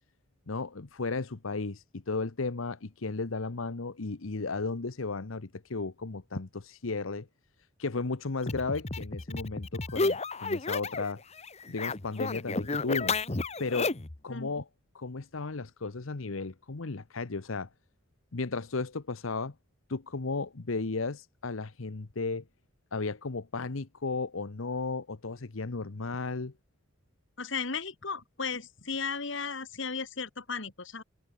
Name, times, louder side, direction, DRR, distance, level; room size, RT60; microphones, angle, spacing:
voice 1, 0.5-6.5 6.8-7.3 7.8-11.2 11.7-13.2 13.6-13.9 14.2-14.7 14.9-17.7 18.3-19.5 19.9-22.4 22.9-26.5, left 3 dB, 85° left, 1.0 m, -34 dB
sound 1, 8.4-11.1 11.4-14.2, left 3 dB, 30° left, 1.0 m, -32 dB
voice 2, 27.4-31.0, left 5 dB, 65° left, 2.2 m, -35 dB
head